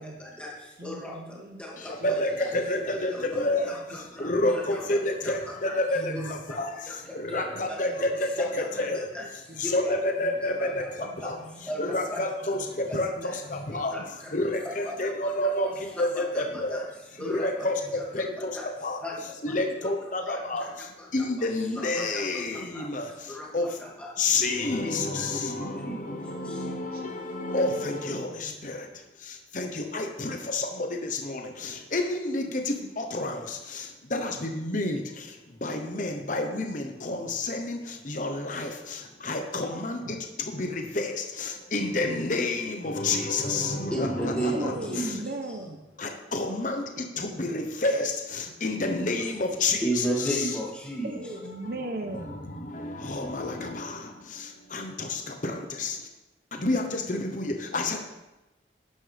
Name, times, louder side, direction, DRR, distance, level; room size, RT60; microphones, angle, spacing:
voice 1, 0.0-2.5 2.9-5.8 6.1-6.6 6.8-8.0 8.4-8.7 8.9-9.3 9.6-10.0 10.6-11.3 11.6-12.2 12.9-13.3 13.7-14.3 14.9-15.0 15.2-15.5 16.0-16.4 16.7-16.8 17.2-17.7 18.4-18.7 19.0-19.2 19.5-19.9 20.3-20.7 21.0-21.1 21.8-22.2 22.5-22.9 23.3-24.1 24.8-26.7 43.9-45.1 49.8-51.1, right 1 dB, 5° left, -5 dB, 2.4 m, -36 dB
voice 2, 0.8-2.2 3.1-3.6 4.2-5.3 5.6-5.7 6.0-6.6 7.5-8.0 8.7-8.8 9.2-9.7 10.2-10.7 11.0-11.9 12.1-12.2 12.7-12.8 13.2-13.4 14.9-15.3 17.2-17.4 20.2-20.3 22.0-22.2 22.8-22.9 24.2-24.4 26.1-26.3 26.6-27.8 28.1-28.7 30.0-30.4 32.6-32.9 40.0-40.2 44.5-45.8 51.0-52.4, right 2 dB, 60° right, 3 dB, 0.9 m, -41 dB
voice 3, 1.8-9.1 9.6-19.0 19.4-23.8 24.2-45.2 46.0-50.6 51.3-51.7 52.2-56.1 56.5-58.1, left 2 dB, 45° left, 3 dB, 1.0 m, -30 dB
12.5 x 10.0 x 3.5 m, 1.0 s
head